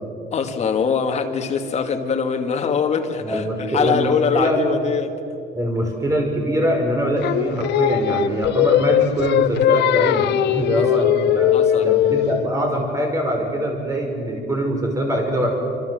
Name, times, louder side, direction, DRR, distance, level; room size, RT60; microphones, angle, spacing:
voice 1, 0.3-5.1 10.7-11.0 11.5-11.9, left 6 dB, 40° left, 4 dB, 2.2 m, -23 dB
voice 2, 3.2-4.6 5.5-11.5 11.8-15.6, equal, 20° right, 2 dB, 5.3 m, -23 dB
Singing, 7.2-12.4, left 11 dB, 75° left, 0.9 m, -19 dB
26.5 x 25.5 x 7.8 m, 2.6 s
cardioid pair, 155°, 18 cm